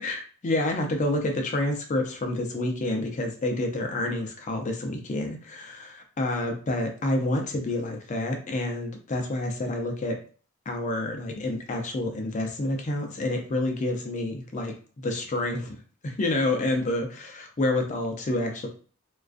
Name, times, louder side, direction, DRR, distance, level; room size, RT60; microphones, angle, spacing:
voice 1, 0.0-10.2 10.7-15.8 16.0-18.7, left 1 dB, 35° left, 3 dB, 0.5 m, -28 dB
2.4 x 2.2 x 2.4 m, 0.40 s
head